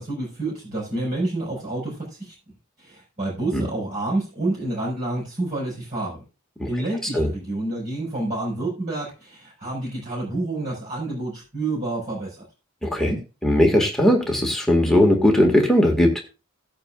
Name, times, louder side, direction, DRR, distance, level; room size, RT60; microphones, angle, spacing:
voice 1, 0.0-2.3 2.8-6.2 6.7-12.5, right 2 dB, 40° right, -5 dB, 5.8 m, -28 dB
voice 2, 12.8-16.1, left 1 dB, ahead, 0 dB, 2.1 m, -19 dB
17.5 x 8.8 x 2.5 m, 0.31 s
head